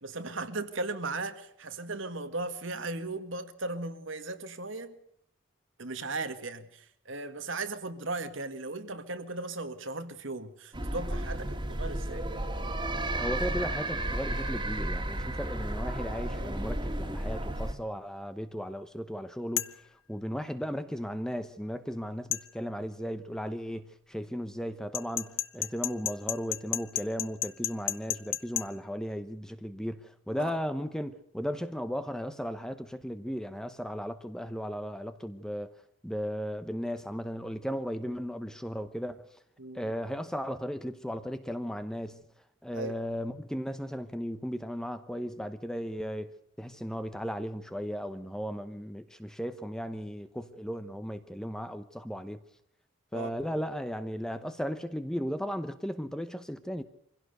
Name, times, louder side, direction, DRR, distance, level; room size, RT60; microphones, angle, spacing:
voice 1, 0.0-5.0 5.8-12.3 30.4-30.5 39.6-39.9 42.7-43.0 53.1-53.3, right 2 dB, 65° right, 1.8 m, -37 dB
sound 1, 10.7-17.7, right 1 dB, 20° right, 2.2 m, -33 dB
voice 2, 13.2-19.8 20.1-35.7 36.0-39.3 39.7-42.2 42.6-46.3 46.6-52.4 53.1-56.8, equal, 5° left, 0.9 m, -36 dB
sound 2, 19.6-19.8 22.3-22.5 24.9-28.7, left 14 dB, 70° left, 0.8 m, -31 dB
24.5 x 16.5 x 6.7 m
head